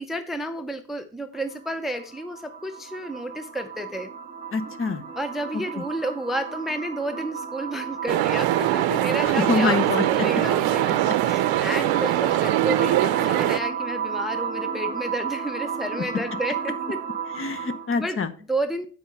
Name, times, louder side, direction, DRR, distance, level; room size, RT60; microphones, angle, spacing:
voice 1, 0.0-4.1 5.2-17.0 18.0-18.2 18.5-18.8, right 1 dB, ahead, 8 dB, 0.6 m, -31 dB
sound 1, 1.3-18.0, right 6 dB, 25° right, 1.9 m, -33 dB
voice 2, 4.5-5.0 5.8-5.9 9.2-10.3 11.6-11.7 17.3-18.3, left 4 dB, 35° left, 11 dB, 1.0 m, -25 dB
sound 2, 8.1-13.6, right 15 dB, 80° right, 0.6 m, -22 dB
9.4 x 4.7 x 5.4 m, 0.40 s
cardioid pair, 120°, 36 cm